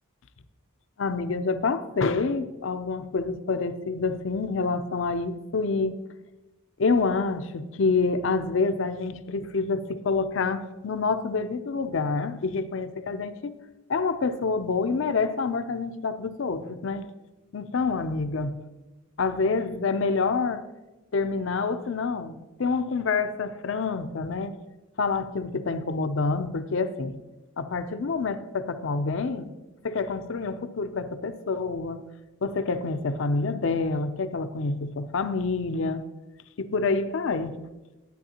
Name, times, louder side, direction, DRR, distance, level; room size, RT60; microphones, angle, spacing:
voice 1, 1.0-6.0 6.8-13.6 13.9-17.1 17.5-18.6 19.2-20.6 21.1-24.6 25.0-27.2 27.6-29.5 29.8-32.0 32.4-36.1 36.6-37.6, left 4 dB, 65° left, 0.5 m, -27 dB
11.5 x 9.1 x 2.9 m
head